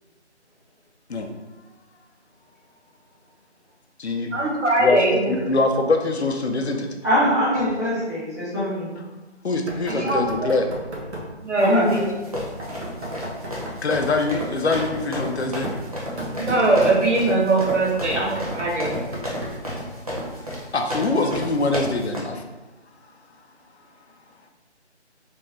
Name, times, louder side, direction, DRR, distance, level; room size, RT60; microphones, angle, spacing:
voice 1, 4.3-5.4 9.9-10.6 11.4-12.1 16.4-18.9, right 2 dB, 90° right, -1 dB, 1.1 m, -21 dB
voice 2, 5.3-6.9 9.4-10.7 13.8-15.7 20.7-22.4, left 3 dB, 70° left, 4 dB, 0.6 m, -23 dB
voice 3, 7.0-8.9 11.6-12.0, equal, 15° left, -12 dB, 0.8 m, -22 dB
Knock, 9.7-11.4 12.6-13.9 14.5-17.4 17.9-19.7, right 1 dB, 70° right, 1.2 m, -35 dB
sound 1, 11.6-22.2, equal, 30° right, 0.7 m, -32 dB
3.4 x 2.9 x 3.2 m, 1.2 s
figure-of-eight pair, 165°, 35 cm